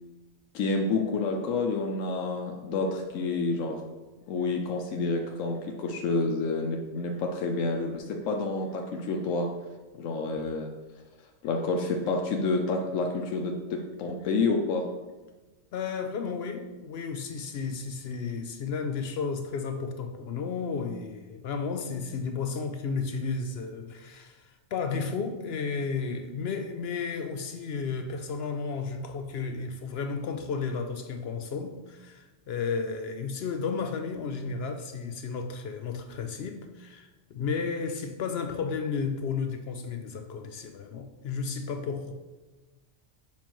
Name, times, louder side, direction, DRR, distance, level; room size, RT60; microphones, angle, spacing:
voice 1, 0.5-3.8 4.3-9.5 9.9-10.7 11.4-14.9, left 3 dB, 85° left, 1.0 m, -29 dB
voice 2, 15.7-42.1, left 5 dB, 65° left, 0.7 m, -33 dB
7.2 x 5.2 x 3.0 m
omnidirectional pair, 1.3 m